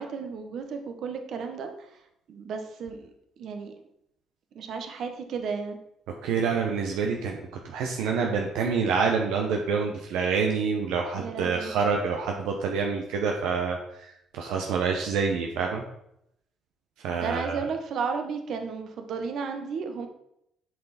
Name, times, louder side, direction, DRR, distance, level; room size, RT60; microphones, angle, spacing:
voice 1, 0.0-2.0 2.3-3.1 3.4-3.7 4.5-5.8 11.2-11.7 17.2-20.1, right 5 dB, 65° right, 6 dB, 1.1 m, -33 dB
voice 2, 6.2-7.4 7.6-15.8 17.0-17.6, right 5 dB, 85° right, 2 dB, 0.8 m, -27 dB
7.5 x 5.8 x 4.2 m, 0.79 s
supercardioid pair, 80°, 0 cm